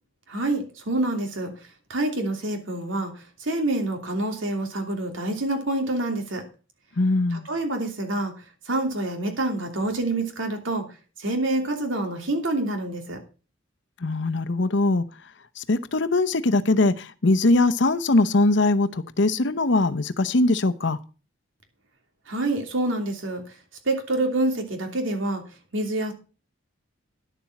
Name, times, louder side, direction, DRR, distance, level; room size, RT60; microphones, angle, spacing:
voice 1, 0.3-1.5 1.9-3.1 3.4-6.4 7.3-8.3 8.7-10.9 11.2-13.2 22.3-23.4 23.8-25.4 25.7-26.1, right 2 dB, 80° right, 4 dB, 3.0 m, -27 dB
voice 2, 7.0-7.5 14.0-15.0 15.6-21.0, left 2 dB, 60° left, 11 dB, 0.8 m, -21 dB
11.0 x 7.2 x 5.9 m, 0.34 s
head